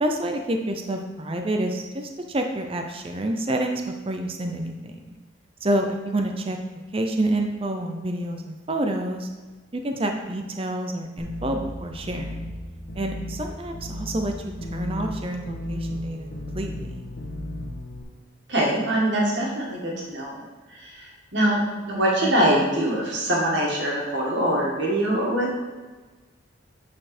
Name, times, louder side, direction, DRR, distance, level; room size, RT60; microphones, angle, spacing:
voice 1, 0.0-5.1 5.6-6.6 6.9-9.3 9.7-12.5 12.9-14.3 14.7-16.3 16.5-17.0, right 1 dB, 30° right, 4 dB, 0.6 m, -28 dB
sound 1, 11.2-18.0, left 1 dB, 75° left, 1.3 m, -34 dB
voice 2, 18.5-20.4 20.7-21.6 21.9-25.5, right 1 dB, 60° right, -4 dB, 2.0 m, -23 dB
8.9 x 4.4 x 4.3 m, 1.3 s
head